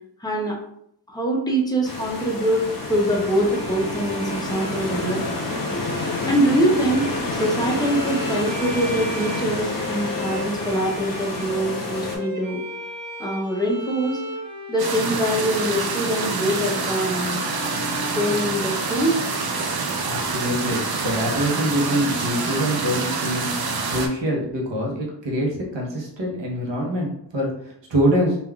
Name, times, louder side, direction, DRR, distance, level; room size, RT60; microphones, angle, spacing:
voice 1, 0.2-0.6 1.1-5.4 6.3-7.1 7.3-12.6 13.2-14.2 14.7-17.5 18.1-19.2, right 1 dB, 10° left, -1 dB, 0.6 m, -23 dB
sound 1, 1.8-12.2, left 2 dB, 50° left, 0.8 m, -29 dB
Bowed string instrument, 3.4-19.2, left 2 dB, 25° right, 1.4 m, -37 dB
sound 2, 14.8-24.1, right 4 dB, 60° right, 0.5 m, -26 dB
voice 2, 20.0-23.5 23.9-28.4, equal, 85° right, -2 dB, 0.9 m, -24 dB
3.3 x 2.4 x 2.3 m, 0.70 s
wide cardioid pair, 80°, 43 cm